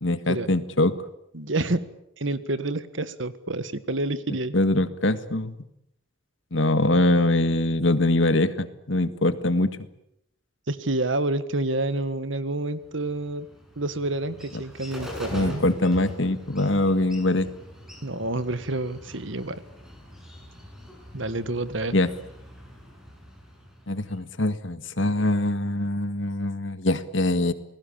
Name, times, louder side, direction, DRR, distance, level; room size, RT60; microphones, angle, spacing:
voice 1, 0.0-1.0 4.5-5.6 6.5-9.7 15.3-17.5 21.9-22.1 23.9-27.5, left 2 dB, 70° left, 11 dB, 1.8 m, -23 dB
voice 2, 1.3-1.8 2.2-4.5 10.7-13.5 13.8-15.6 18.0-19.6 21.1-21.9, right 2 dB, 70° right, 13 dB, 1.7 m, -28 dB
Bird, 12.8-24.3, equal, ahead, 6.7 m, -42 dB
29.0 x 19.5 x 8.8 m, 0.81 s
head